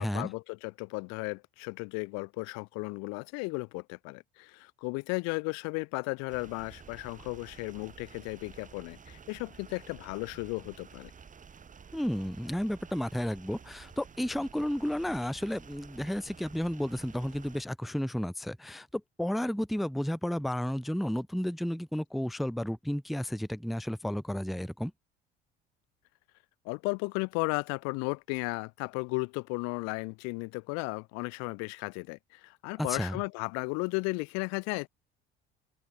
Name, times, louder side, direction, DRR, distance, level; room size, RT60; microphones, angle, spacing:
voice 1, 0.0-11.1 26.6-34.9, left 30 dB, 60° left, 0.6 m, -35 dB
sound 1, 6.3-17.6, right 6 dB, 25° right, 1.3 m, -51 dB
voice 2, 11.9-24.9 32.8-33.2, equal, ahead, 0.5 m, -32 dB
hypercardioid pair, 60°, 30 cm